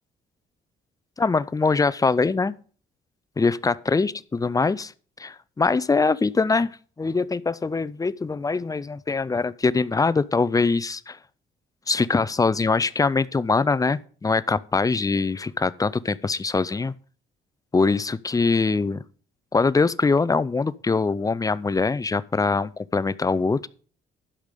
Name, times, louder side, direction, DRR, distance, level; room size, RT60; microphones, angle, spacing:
voice 1, 1.2-2.5 3.4-4.9 5.2-6.7 7.0-11.2 11.9-16.9 17.7-19.0 19.5-23.7, left 4 dB, 15° left, 0.5 m, -23 dB
11.5 x 5.2 x 6.7 m
cardioid pair, 90°, 20 cm